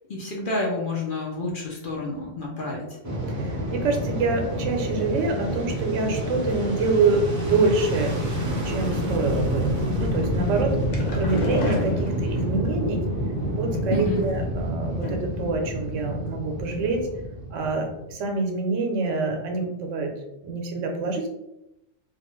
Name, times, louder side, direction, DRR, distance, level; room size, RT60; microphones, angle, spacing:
voice 1, 0.1-2.8 13.9-14.2, left 2 dB, 55° left, -2 dB, 0.6 m, -28 dB
Fixed-wing aircraft airplane, 3.0-18.2, equal, 15° right, 0.7 m, -28 dB
voice 2, 3.3-9.7 10.0-10.8 11.1-13.0 13.5-17.1 17.5-20.1 20.4-21.3, right 3 dB, 85° right, 3 dB, 1.0 m, -26 dB
sound 1, 10.6-12.7 13.7-14.6 15.0-15.4 15.7-15.8 16.2-16.3, left 1 dB, 85° left, 1.0 m, -32 dB
2.4 x 2.3 x 3.0 m, 0.89 s
omnidirectional pair, 1.3 m